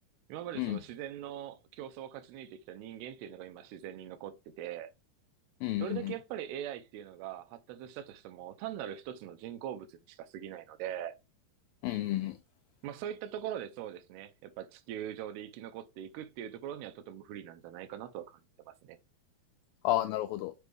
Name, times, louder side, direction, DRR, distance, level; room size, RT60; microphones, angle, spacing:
voice 1, 0.3-4.9 5.8-11.1 12.8-19.0, right 10 dB, 85° right, 2.6 m, -42 dB
voice 2, 5.6-6.1 11.8-12.4 19.8-20.5, left 15 dB, 85° left, 2.0 m, -31 dB
6.8 x 4.5 x 3.2 m
omnidirectional pair, 4.6 m